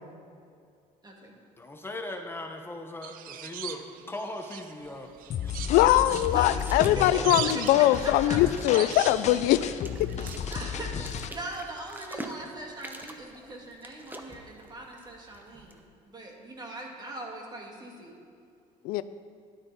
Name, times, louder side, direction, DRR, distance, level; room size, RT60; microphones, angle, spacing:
voice 1, 1.0-1.3 6.3-8.4 10.5-18.2, right 2 dB, 30° right, 0 dB, 2.4 m, -40 dB
voice 2, 1.6-5.1 5.4-5.7, left 2 dB, 15° left, 4 dB, 1.0 m, -39 dB
sound 1, 3.0-4.8 5.2-10.9, right 10 dB, 70° right, 0.6 m, -40 dB
sound 2, 4.8-15.9, right 1 dB, 10° right, 1.0 m, -47 dB
sound 3, 5.3-11.3, left 7 dB, 50° left, 0.7 m, -33 dB
voice 3, 5.7-10.1 18.9-19.0, left 14 dB, 85° left, 14 dB, 0.4 m, -22 dB
13.0 x 11.5 x 4.2 m, 2.3 s
cardioid pair, 100°, 15 cm